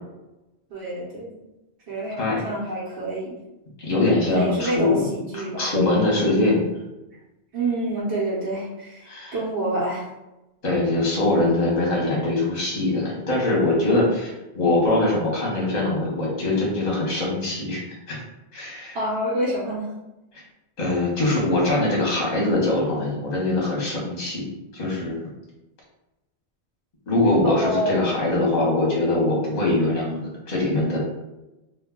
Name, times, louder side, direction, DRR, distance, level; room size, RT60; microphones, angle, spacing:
voice 1, 0.7-1.3 1.9-3.4 4.3-5.7 7.5-10.1 18.9-19.9 27.4-28.5, right 1 dB, 75° right, -7 dB, 1.0 m, -27 dB
voice 2, 3.8-5.1 5.6-6.7 9.0-9.4 10.6-18.2 18.5-19.0 20.3-20.4 20.8-24.4 24.7-25.3 27.1-31.0, left 2 dB, 40° left, -4 dB, 0.9 m, -22 dB
2.4 x 2.2 x 3.6 m, 0.98 s
omnidirectional pair, 1.1 m